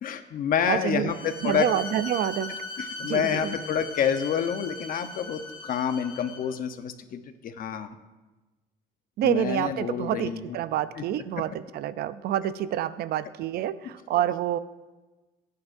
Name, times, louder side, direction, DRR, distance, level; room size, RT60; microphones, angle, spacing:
voice 1, 0.0-1.7 2.8-7.9 9.2-10.4 11.0-11.1, left 8 dB, 55° left, 8 dB, 0.9 m, -28 dB
voice 2, 0.7-1.1 1.4-2.5 3.0-3.5 9.2-14.6, right 11 dB, 70° right, 15 dB, 0.5 m, -28 dB
Bowed string instrument, 1.1-6.6, left 3 dB, 30° left, 2.1 m, -39 dB
19.0 x 9.5 x 2.7 m, 1.2 s
cardioid pair, 110°, 17 cm